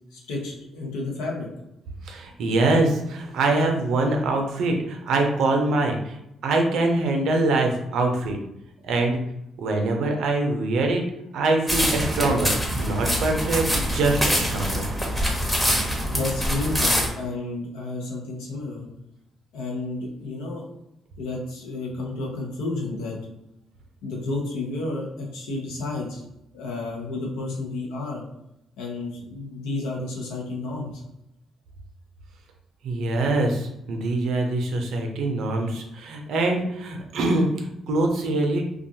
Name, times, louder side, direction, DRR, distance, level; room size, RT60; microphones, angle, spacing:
voice 1, 0.1-1.5 16.1-18.9 19.5-20.6 21.2-23.2 24.0-26.2 26.5-28.2 28.8-31.0, left 2 dB, 85° left, -1 dB, 0.7 m, -31 dB
voice 2, 2.1-6.1 6.4-8.4 8.8-9.2 9.6-11.0 11.3-14.9 32.8-38.7, right 2 dB, 70° right, 3 dB, 0.5 m, -24 dB
sound 1, 11.7-17.1, equal, 10° left, 0.9 m, -24 dB
2.4 x 2.2 x 2.8 m, 0.84 s
supercardioid pair, 55°, 0 cm